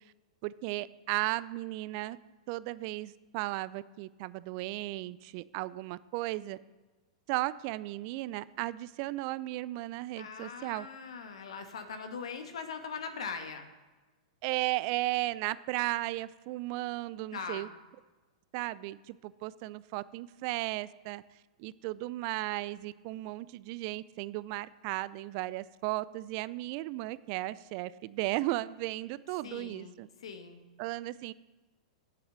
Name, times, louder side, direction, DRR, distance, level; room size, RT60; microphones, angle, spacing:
voice 1, 0.4-2.2 2.5-6.6 7.3-10.9 14.4-17.7 18.5-21.2 21.6-30.1 30.8-31.3, right 18 dB, 50° right, 18 dB, 0.4 m, -35 dB
voice 2, 10.2-13.7 17.3-17.7 29.4-30.6, left 5 dB, 75° left, 7 dB, 1.3 m, -41 dB
7.9 x 7.6 x 6.7 m, 1.2 s
hypercardioid pair, 105°, 3 cm